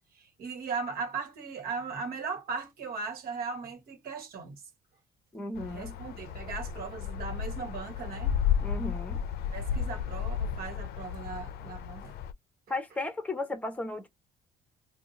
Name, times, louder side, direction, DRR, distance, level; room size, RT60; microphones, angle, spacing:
voice 1, 0.1-4.6 5.7-8.4 9.5-12.2, right 5 dB, 60° right, 1.3 m, -38 dB
voice 2, 5.3-6.0 8.6-9.2 12.7-14.1, left 2 dB, 10° left, 1.0 m, -35 dB
sound 1, 5.6-12.3, left 8 dB, 70° left, 0.5 m, -33 dB
2.7 x 2.4 x 3.8 m
cardioid pair, 110°, 17 cm